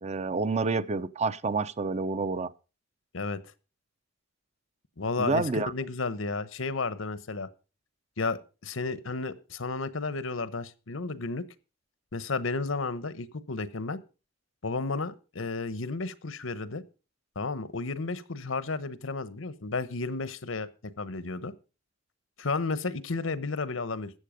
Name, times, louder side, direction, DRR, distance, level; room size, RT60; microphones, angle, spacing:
voice 1, 0.0-2.5 5.2-5.7, right 3 dB, 35° right, 0.7 m, -28 dB
voice 2, 5.0-7.5 8.2-11.4 12.1-14.0 14.6-16.8 17.3-20.7 21.0-21.5 22.4-24.1, left 3 dB, 85° left, 1.0 m, -32 dB
14.5 x 8.4 x 5.1 m
head